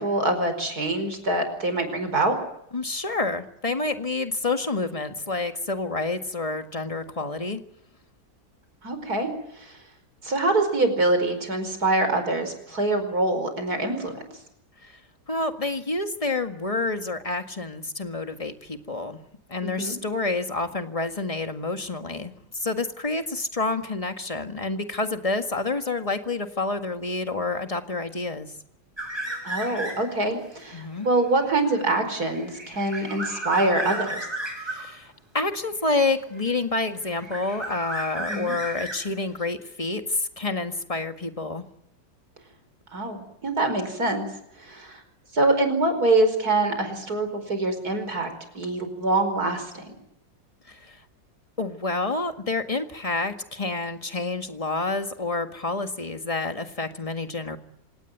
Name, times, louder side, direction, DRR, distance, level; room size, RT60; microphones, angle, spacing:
voice 1, 0.0-2.4 8.8-9.3 9.6-9.8 10.2-14.2 19.6-20.0 29.4-34.3 38.2-38.5 42.9-44.3 44.6-45.0 45.3-50.0, right 2 dB, 55° right, 8 dB, 5.4 m, -25 dB
voice 2, 2.7-7.6 14.8-15.0 15.3-19.2 19.5-28.5 30.7-31.1 34.6-41.6 50.7-51.0 51.6-57.6, left 3 dB, 20° left, 7 dB, 1.7 m, -28 dB
sound 1, 29.0-30.3 30.7-34.9 35.9-36.7 37.0-39.4, right 1 dB, 15° right, 7.9 m, -34 dB
26.5 x 18.0 x 9.4 m, 0.77 s
omnidirectional pair, 1.9 m